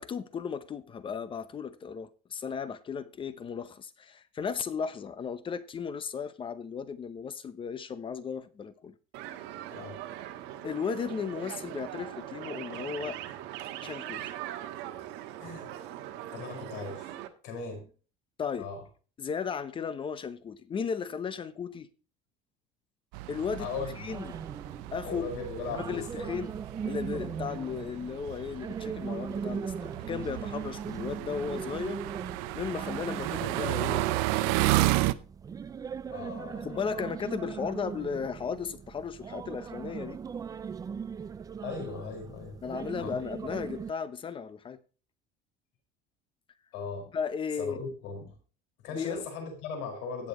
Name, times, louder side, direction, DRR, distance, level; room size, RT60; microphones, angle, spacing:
voice 1, 0.0-8.9 10.6-13.2 13.8-14.3 18.4-18.7 19.2-21.9 23.3-23.7 24.0-24.3 24.9-25.3 25.7-26.5 26.8-32.0 32.5-34.0 34.3-34.9 36.6-40.2 42.6-44.8 47.1-47.8 48.9-49.2, left 6 dB, 30° left, 0.8 m, -35 dB
sound 1, 9.1-17.3, right 12 dB, 70° right, 1.4 m, -40 dB
voice 2, 9.7-10.0 15.4-15.7 16.3-17.1 17.4-17.9 18.6-18.8 23.6-24.0 25.0-26.3 36.1-37.1 41.6-42.6 42.9-43.2 46.7-47.1 47.6-48.3 48.8-50.3, left 4 dB, 80° left, 5.1 m, -38 dB
sound 2, 23.1-35.1, right 18 dB, 90° right, 0.6 m, -33 dB
sound 3, 24.1-43.9, right 6 dB, 20° right, 0.4 m, -39 dB
17.0 x 7.0 x 3.0 m
cardioid pair, 135°, 19 cm